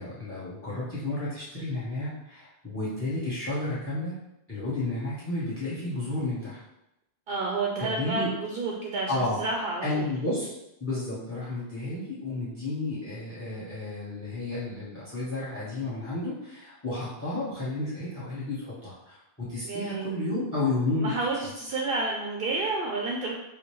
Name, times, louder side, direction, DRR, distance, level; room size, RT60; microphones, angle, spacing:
voice 1, 0.0-4.2 4.5-6.6 7.8-8.3 9.1-9.4 9.8-10.5 10.8-21.1, left 2 dB, 15° left, -8 dB, 0.9 m, -32 dB
voice 2, 7.3-10.1 19.6-20.1 21.0-23.3, right 3 dB, 65° right, -1 dB, 0.7 m, -30 dB
4.8 x 2.1 x 3.0 m, 0.88 s
omnidirectional pair, 1.0 m